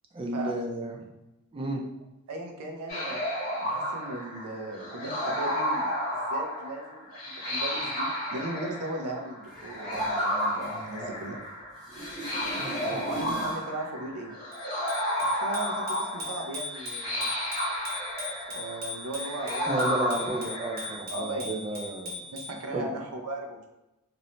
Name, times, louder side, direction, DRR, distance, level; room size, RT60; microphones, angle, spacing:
voice 1, 0.1-1.0 1.5-1.8 12.5-13.2 19.7-22.3 22.7-22.9, right 1 dB, 25° right, 1 dB, 0.3 m, -33 dB
voice 2, 2.3-3.2 3.6-5.9 6.3-11.4 12.6-14.3 15.2-17.3 18.5-19.8 21.1-21.9 22.3-23.7, right 2 dB, 80° right, 2 dB, 0.5 m, -37 dB
sound 1, 2.9-21.0, equal, 40° left, 1.1 m, -32 dB
sound 2, 9.4-11.5 11.8-13.7 19.4-19.5, equal, ahead, 0.7 m, -41 dB
Bicycle bell, 14.5-22.6, left 3 dB, 45° right, 0.7 m, -39 dB
2.5 x 2.0 x 2.9 m, 0.95 s
head